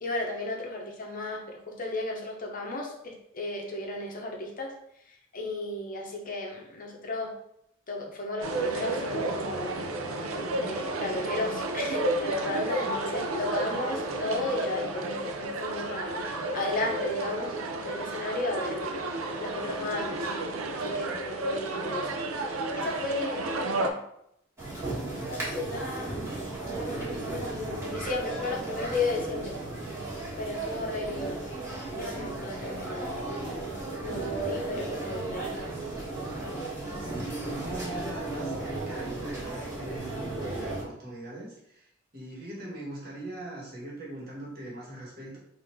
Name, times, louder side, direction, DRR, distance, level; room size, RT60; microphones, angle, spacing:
voice 1, 0.0-4.7 5.1-7.3 7.9-9.8 10.6-16.2 16.5-19.0 19.4-20.3 20.7-22.2 22.5-24.0 25.3-26.1 26.7-29.5 30.4-31.4 31.9-33.2 34.0-35.6, left 2 dB, 40° left, 0 dB, 0.7 m, -34 dB
sound 1, 8.4-23.9, right 2 dB, 85° right, 0.5 m, -32 dB
sound 2, 24.6-40.8, right 2 dB, 15° right, 1.4 m, -35 dB
voice 2, 37.0-45.4, right 1 dB, 50° right, -4 dB, 1.5 m, -41 dB
3.8 x 2.6 x 4.5 m, 0.76 s
head